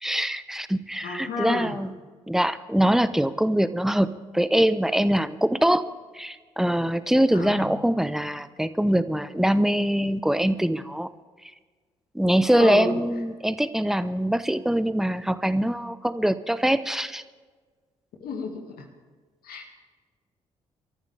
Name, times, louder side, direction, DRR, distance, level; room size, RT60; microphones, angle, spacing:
voice 1, 0.0-1.9 2.3-5.8 6.1-11.1 12.1-17.2, right 1 dB, ahead, 14 dB, 0.9 m, -23 dB
voice 2, 1.0-1.8 7.3-7.8 12.5-13.0 18.2-18.9 19.4-19.7, left 4 dB, 60° left, 2 dB, 2.1 m, -32 dB
27.5 x 14.0 x 3.5 m, 1.4 s
figure-of-eight pair, 40°, 17 cm